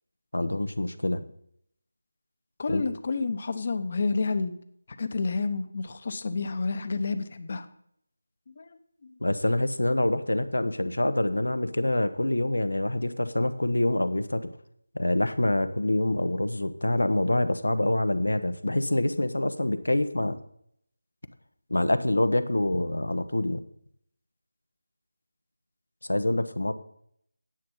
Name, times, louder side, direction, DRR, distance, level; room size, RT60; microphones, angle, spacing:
voice 1, 0.3-1.2 2.7-2.8 9.2-14.5 14.9-20.4 21.7-23.6 26.1-26.7, left 1 dB, 90° left, 11 dB, 1.0 m, -26 dB
voice 2, 2.6-4.5 5.0-7.7 8.5-8.8 9.0-9.1, left 4 dB, 40° left, 10 dB, 0.9 m, -29 dB
10.5 x 7.7 x 5.6 m, 0.69 s
figure-of-eight pair, 165°, 0 cm